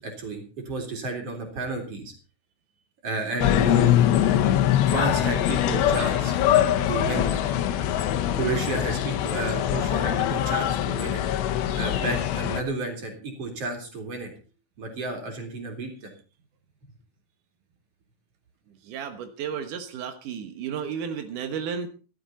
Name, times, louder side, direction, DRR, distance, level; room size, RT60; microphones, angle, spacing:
voice 1, 0.0-2.1 3.0-4.0 4.9-6.3 6.9-7.4 8.4-11.2 11.8-14.3 14.8-16.1, right 3 dB, 35° right, 3 dB, 4.0 m, -32 dB
sound 1, 3.4-12.6, left 11 dB, 75° left, 3.0 m, -23 dB
voice 2, 18.8-21.9, right 7 dB, 80° right, 7 dB, 1.8 m, -33 dB
15.5 x 13.0 x 4.2 m, 0.36 s
omnidirectional pair, 5.6 m